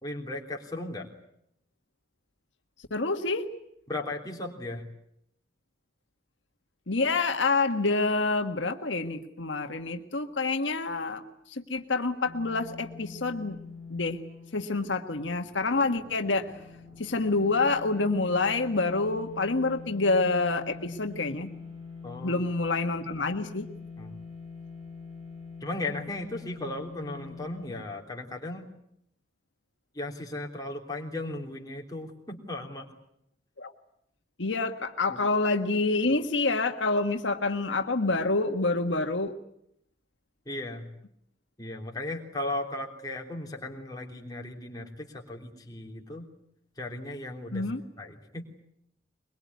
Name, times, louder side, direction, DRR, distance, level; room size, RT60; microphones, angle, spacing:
voice 1, 0.0-1.1 3.9-4.9 22.0-22.4 24.0-24.2 25.6-28.7 29.9-32.9 35.1-35.2 40.4-40.9 41.6-46.3 46.8-47.7 48.0-48.5, left 2 dB, 20° left, 0 dB, 3.3 m, -36 dB
voice 2, 2.9-3.5 6.9-13.6 13.9-14.2 14.5-16.5 17.0-21.5 22.2-23.7 33.6-33.7 34.4-39.3 47.5-47.8, left 3 dB, 85° left, 6 dB, 1.6 m, -27 dB
sound 1, 12.2-27.7, left 5 dB, 30° right, 4.0 m, -44 dB
23.0 x 22.0 x 9.5 m, 0.76 s
head